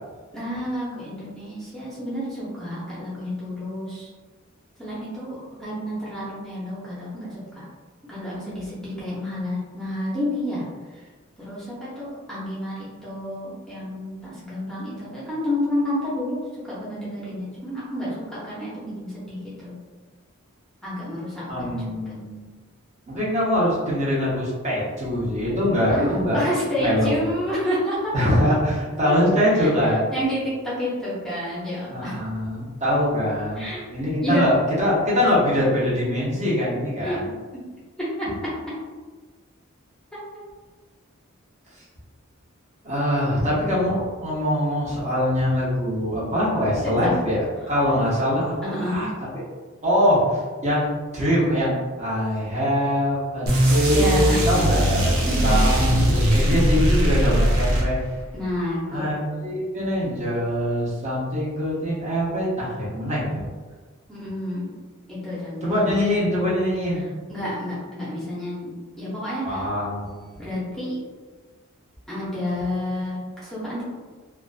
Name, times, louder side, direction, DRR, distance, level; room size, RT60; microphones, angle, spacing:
voice 1, 0.3-4.1 4.8-7.6 8.1-10.6 11.4-19.7 20.8-22.1 25.9-28.1 29.1-29.2 29.6-29.7 30.1-32.2 33.6-33.8 34.2-34.5 37.0-37.2 38.0-38.5 40.3-40.4 47.0-47.1 48.6-49.1 53.8-54.5 55.3-55.6 58.3-59.2 64.1-64.7 65.1-66.0 67.3-68.7 69.0-69.6 70.4-71.0 72.1-73.8, left 1 dB, 5° left, -9 dB, 0.6 m, -29 dB
voice 2, 21.5-22.4 23.1-26.4 26.8-27.1 28.1-30.1 31.9-37.3 42.8-49.1 49.3-49.4 49.8-50.9 51.1-58.0 58.9-63.4 65.6-67.0 69.4-70.5 72.1-72.5, equal, 35° right, -7 dB, 0.7 m, -23 dB
sound 1, 53.5-58.3, equal, 70° right, 0.5 m, -20 dB
2.4 x 2.2 x 2.4 m, 1.4 s
head